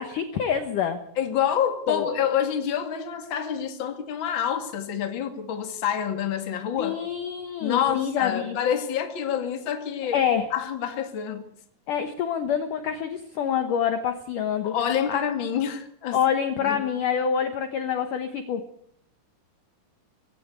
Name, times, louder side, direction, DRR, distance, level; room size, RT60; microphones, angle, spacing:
voice 1, 0.0-1.0 1.9-2.1 6.8-8.6 10.1-10.5 11.9-14.7 15.1-15.2 16.1-18.6, left 8 dB, 65° left, 8 dB, 2.3 m, -26 dB
voice 2, 1.2-7.0 7.6-10.2 10.5-11.4 14.6-16.2 16.5-16.8, left 9 dB, 40° left, 6 dB, 2.1 m, -27 dB
20.0 x 16.5 x 8.2 m, 0.66 s
omnidirectional pair, 5.0 m